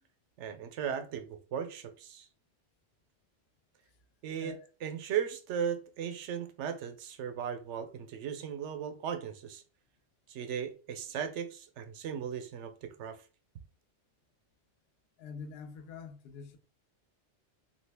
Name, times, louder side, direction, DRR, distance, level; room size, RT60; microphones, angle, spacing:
voice 1, 0.4-2.3 4.2-9.6 10.3-13.2, right 8 dB, 85° right, 0.9 m, -37 dB
voice 2, 15.2-16.6, left 5 dB, 65° left, 0.8 m, -45 dB
3.1 x 2.6 x 3.3 m
omnidirectional pair, 1.2 m